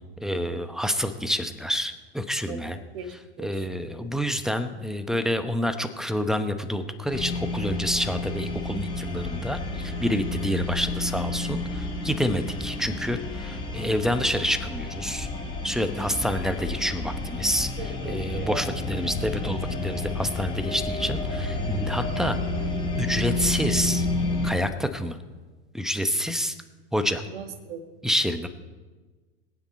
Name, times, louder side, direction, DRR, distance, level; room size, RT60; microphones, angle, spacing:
voice 1, 0.2-2.8 3.4-15.3 15.6-17.7 18.0-22.4 23.0-24.1 24.4-25.2 25.7-26.6 26.9-27.2 28.0-28.5, equal, ahead, 10 dB, 1.0 m, -28 dB
voice 2, 2.9-3.7 17.8-18.7 27.3-27.8, right 5 dB, 55° right, 6 dB, 2.0 m, -38 dB
sound 1, 7.1-24.5, left 2 dB, 15° left, 2.9 m, -30 dB
21.0 x 9.1 x 4.4 m, 1.3 s
figure-of-eight pair, 90°, 34 cm